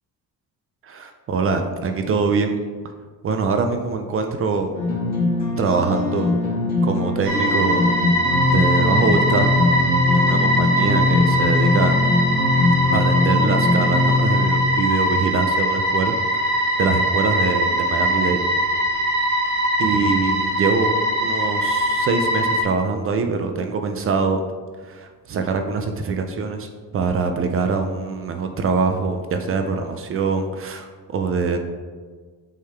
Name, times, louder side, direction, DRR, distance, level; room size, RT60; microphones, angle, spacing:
voice 1, 0.8-2.6 3.2-4.7 5.6-6.3 6.8-7.9 8.5-9.8 10.1-11.9 12.9-18.4 19.8-20.9 21.2-24.4 24.8-31.6, right 4 dB, 40° right, 6 dB, 0.4 m, -23 dB
sound 1, 4.7-14.7, left 3 dB, 25° left, 1.7 m, -21 dB
sound 2, 7.2-22.6, right 1 dB, 60° right, 1.1 m, -21 dB
8.5 x 3.8 x 3.3 m, 1.5 s
cardioid pair, 165°, 35 cm